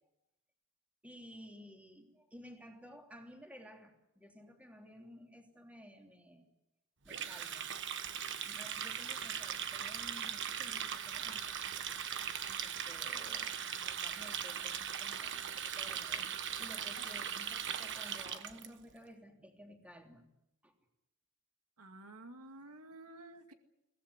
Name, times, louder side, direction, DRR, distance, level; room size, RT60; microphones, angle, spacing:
voice 1, 1.0-6.4 7.0-7.7 8.4-11.9 12.6-16.2 16.5-20.3 20.6-20.7, equal, 5° right, 3 dB, 3.3 m, -55 dB
Water tap faucet, 7.1-18.7, right 8 dB, 55° right, 1.3 m, -39 dB
voice 2, 21.8-23.5, right 2 dB, 90° right, 7 dB, 2.2 m, -52 dB
23.0 x 18.0 x 9.8 m, 0.84 s
head